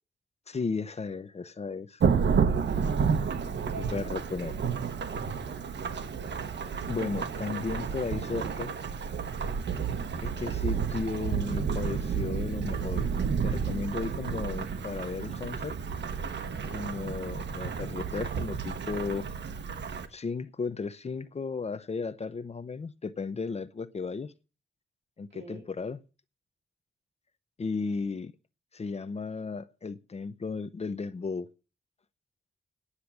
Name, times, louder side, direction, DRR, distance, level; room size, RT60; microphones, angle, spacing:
voice 1, 0.5-2.0 3.9-4.6 6.9-8.8 10.2-13.1 13.4-15.8 16.7-19.3 20.1-24.3 25.2-26.0 27.6-28.3 28.7-31.5, left 4 dB, 35° left, 0.7 m, -34 dB
Thunderstorm / Rain, 2.0-20.1, right 6 dB, 70° right, 1.2 m, -31 dB
voice 2, 2.4-5.0 16.9-17.2 25.3-25.7, right 5 dB, 85° right, 3.1 m, -47 dB
9.8 x 7.5 x 8.3 m
wide cardioid pair, 140°, 19 cm